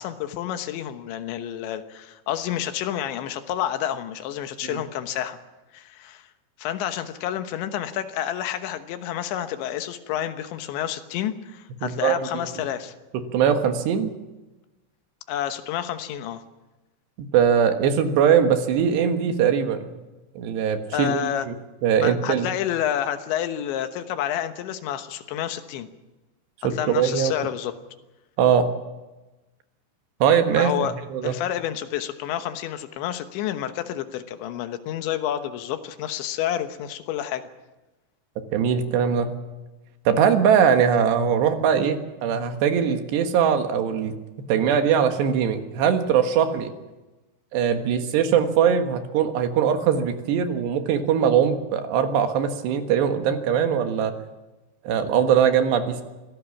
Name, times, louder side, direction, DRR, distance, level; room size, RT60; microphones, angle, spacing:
voice 1, 0.0-5.4 5.7-6.3 6.6-12.9 15.3-16.4 20.9-21.5 22.0-25.9 26.7-27.7 30.5-30.9 31.2-37.5, left 11 dB, 85° left, 9 dB, 3.5 m, -29 dB
voice 2, 11.8-12.4 13.3-14.1 17.2-19.9 20.4-21.5 21.8-22.5 26.6-27.3 28.4-28.7 30.2-30.7 31.1-31.4 38.5-39.3 40.1-44.1 44.5-46.7 47.5-54.1 54.9-56.0, right 8 dB, 75° right, 7 dB, 3.5 m, -21 dB
24.0 x 16.5 x 7.2 m, 1.1 s
omnidirectional pair, 5.1 m